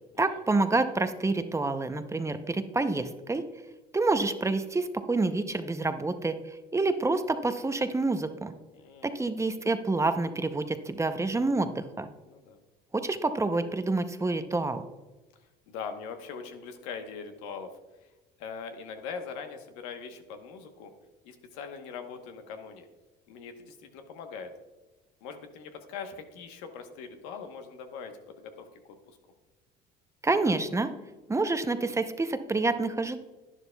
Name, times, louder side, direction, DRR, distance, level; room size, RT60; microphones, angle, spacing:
voice 1, 0.2-3.4 3.9-6.4 6.7-8.5 9.0-12.1 12.9-14.8 30.2-30.9 31.3-33.2, right 3 dB, 15° right, 9 dB, 0.6 m, -28 dB
voice 2, 8.7-9.3 12.2-12.6 15.7-17.7 18.4-20.9 21.2-22.9 23.3-24.5 25.2-28.8, left 6 dB, 90° left, 6 dB, 1.1 m, -41 dB
11.0 x 10.0 x 2.3 m, 1.1 s
supercardioid pair, 90°, 20 cm